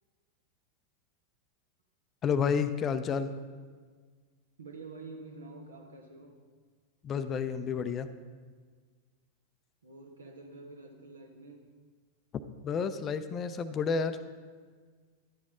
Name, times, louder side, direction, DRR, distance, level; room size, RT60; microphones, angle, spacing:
voice 1, 2.2-3.3 7.0-8.1 12.6-14.2, left 6 dB, 30° left, 11 dB, 0.5 m, -30 dB
voice 2, 4.6-6.4 9.8-11.7, right 3 dB, 70° right, 3 dB, 1.4 m, -48 dB
11.5 x 8.1 x 3.7 m, 1.6 s
figure-of-eight pair, 90°, 0 cm